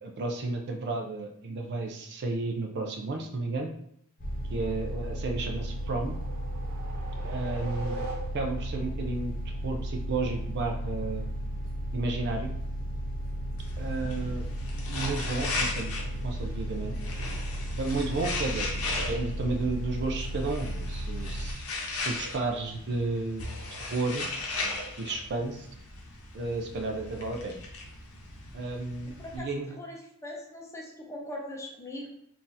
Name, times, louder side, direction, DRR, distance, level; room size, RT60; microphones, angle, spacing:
voice 1, 0.0-3.7 4.5-6.2 7.2-8.1 8.3-9.4 9.6-11.3 11.9-12.5 13.8-14.5 14.9-15.9 16.2-17.0 17.8-21.6 21.9-24.3 25.0-25.7 26.3-27.6 28.5-29.7, right 3 dB, 50° right, 3 dB, 0.4 m, -32 dB
sound 1, 4.2-21.5, right 1 dB, 40° left, 0.8 m, -34 dB
sound 2, 5.5-8.7, right 2 dB, 85° right, 0.8 m, -41 dB
sound 3, 13.6-29.4, left 3 dB, 70° left, 0.7 m, -37 dB
voice 2, 29.2-32.1, left 1 dB, 15° left, -1 dB, 0.6 m, -41 dB
2.8 x 2.5 x 3.8 m, 0.71 s
head